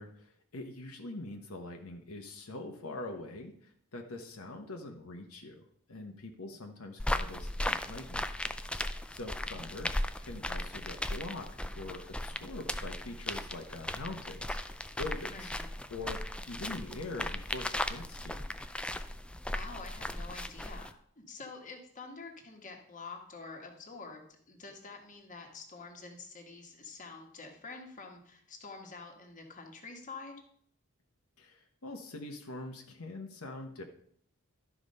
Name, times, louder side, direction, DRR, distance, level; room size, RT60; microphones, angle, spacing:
voice 1, 0.0-5.6 5.9-8.3 8.7-9.9 10.2-11.5 11.8-15.5 15.9-16.2 16.5-18.5 31.4-33.8, left 2 dB, 75° left, 3 dB, 1.1 m, -43 dB
sound 1, 7.0-20.9, left 1 dB, 5° left, 0.3 m, -37 dB
voice 2, 15.3-15.7 19.5-20.9 21.2-30.4, left 4 dB, 35° left, 2 dB, 1.5 m, -47 dB
12.0 x 4.9 x 5.4 m, 0.65 s
head